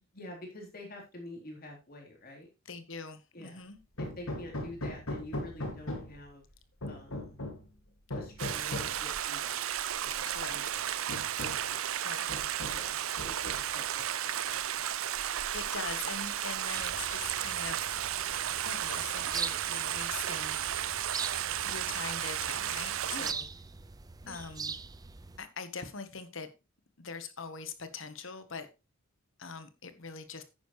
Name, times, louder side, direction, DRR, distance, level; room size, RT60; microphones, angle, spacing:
voice 1, 0.0-2.5 3.3-3.7 4.0-6.4 6.9-7.4 8.1-9.6 10.2-10.9 11.7-12.2 12.7-14.8 23.1-23.4 24.2-24.4, left 1 dB, 45° left, 3.8 m, -47 dB
voice 2, 2.6-3.8 10.3-10.6 12.0-12.3 15.5-18.0 18.6-21.1 21.6-23.5 24.3-24.8 25.4-26.5 27.0-28.7 29.4-30.4, left 5 dB, 65° left, 1.4 m, -42 dB
Hammer, 4.0-6.3 6.8-7.7 8.1-9.0 10.1-10.2 10.6-10.7 11.1-11.7 12.3-12.9 13.2-13.9, left 1 dB, 80° left, 2.3 m, -39 dB
Stream, 8.4-23.3, right 11 dB, 75° right, 0.6 m, -34 dB
sound 1, 16.7-25.4, right 5 dB, 20° right, 0.5 m, -43 dB
10.5 x 9.5 x 3.3 m
head